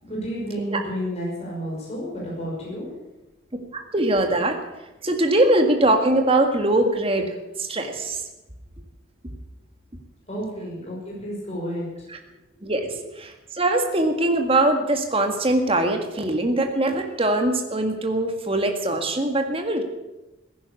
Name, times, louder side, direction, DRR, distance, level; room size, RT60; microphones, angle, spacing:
voice 1, 0.0-3.0 3.6-3.7 10.3-12.3 12.5-13.0, equal, 30° left, -4 dB, 5.7 m, -32 dB
voice 2, 3.7-4.6 5.0-8.2 12.6-19.8, right 1 dB, 30° right, 5 dB, 1.9 m, -22 dB
16.0 x 10.5 x 8.4 m, 1.0 s
head